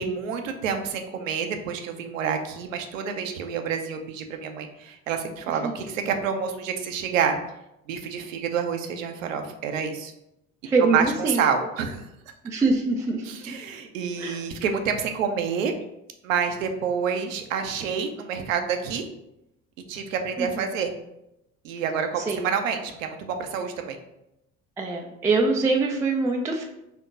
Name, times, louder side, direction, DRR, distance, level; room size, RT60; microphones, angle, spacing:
voice 1, 0.0-7.4 7.9-10.1 10.9-12.0 13.2-15.7 16.2-19.1 19.9-20.9 21.6-24.0, right 6 dB, 70° right, 6 dB, 0.7 m, -28 dB
voice 2, 10.6-11.4 12.4-13.6 14.2-14.5 20.4-20.7 22.2-22.5 24.8-26.6, right 3 dB, 10° right, 1 dB, 0.3 m, -24 dB
4.4 x 2.9 x 4.0 m, 0.86 s
figure-of-eight pair, 60°, 41 cm